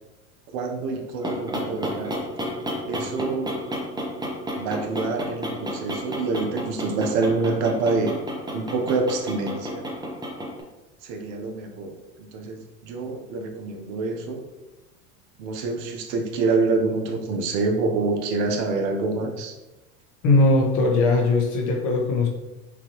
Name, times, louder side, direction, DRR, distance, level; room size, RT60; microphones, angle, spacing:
voice 1, 0.5-2.1 2.9-3.5 4.5-8.2 8.5-9.8 11.0-12.0 12.3-14.5 15.4-19.5, right 3 dB, 55° right, 3 dB, 0.9 m, -26 dB
sound 1, 0.9-10.6, equal, 10° right, 0.9 m, -31 dB
voice 2, 20.2-22.3, left 2 dB, 45° left, 1 dB, 1.2 m, -19 dB
6.0 x 2.9 x 3.0 m, 1.0 s
hypercardioid pair, 100°, 42 cm